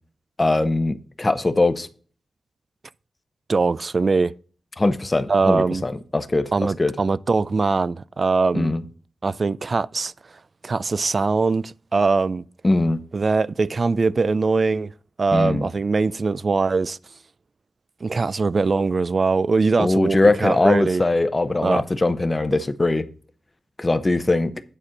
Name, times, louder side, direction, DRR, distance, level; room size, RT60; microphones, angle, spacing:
voice 1, 0.4-1.9 4.8-6.9 8.5-8.8 12.6-13.0 15.3-15.7 19.8-23.1 23.8-24.6, left 2 dB, 25° left, 0.8 m, -21 dB
voice 2, 3.5-4.3 5.3-5.8 6.5-8.7 9.2-10.1 10.6-12.5 13.1-14.9 15.2-17.0 18.0-21.0 21.6-21.8, right 4 dB, 45° right, 0.3 m, -21 dB
9.9 x 4.3 x 6.4 m
wide cardioid pair, 95°, 0 cm